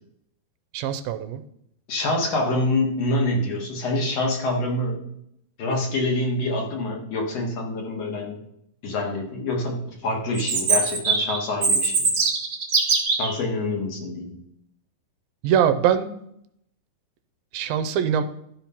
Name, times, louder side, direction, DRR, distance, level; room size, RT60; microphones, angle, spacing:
voice 1, 0.7-1.4 15.4-16.1 17.5-18.2, right 9 dB, 80° right, 9 dB, 2.4 m, -22 dB
voice 2, 1.9-5.0 5.6-8.4 8.8-12.1 13.2-14.3, left 2 dB, 55° left, 1 dB, 2.2 m, -26 dB
Chirp tweet, 10.3-13.3, right 4 dB, 50° right, 1.6 m, -22 dB
12.5 x 4.4 x 5.6 m, 0.74 s
omnidirectional pair, 4.4 m